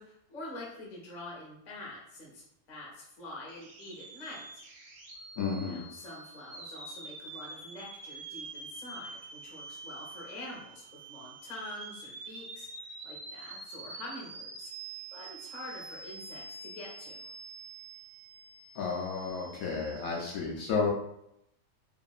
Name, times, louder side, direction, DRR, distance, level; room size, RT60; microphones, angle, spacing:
voice 1, 0.0-4.6 5.7-12.7 13.0-14.7 15.1-17.3, left 1 dB, 35° left, -4 dB, 0.8 m, -46 dB
sound 1, 3.5-20.2, right 3 dB, 65° right, 0.6 m, -46 dB
voice 2, 5.4-5.8 18.8-20.9, left 5 dB, 75° left, -3 dB, 1.0 m, -32 dB
2.8 x 2.5 x 2.3 m, 0.78 s
omnidirectional pair, 1.6 m